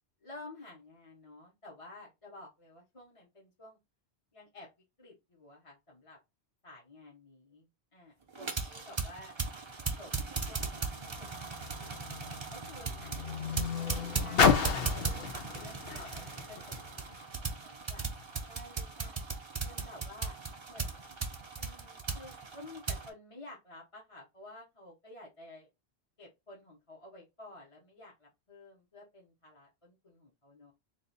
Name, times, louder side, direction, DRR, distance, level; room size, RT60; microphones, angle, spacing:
voice 1, 0.2-3.8 4.3-4.7 5.0-6.2 6.6-9.4 10.0-11.5 11.8-17.0 17.3-18.0 18.5-19.3 19.6-20.4 20.7-21.2 21.5-25.7 26.2-30.7, left 2 dB, 30° left, -4 dB, 1.1 m, -52 dB
sound 1, 8.3-23.1, right 4 dB, 30° right, 0.6 m, -38 dB
Car, 10.8-17.4 18.2-18.3, left 6 dB, 65° left, 0.9 m, -32 dB
3.3 x 2.6 x 4.1 m, 0.23 s
omnidirectional pair, 1.1 m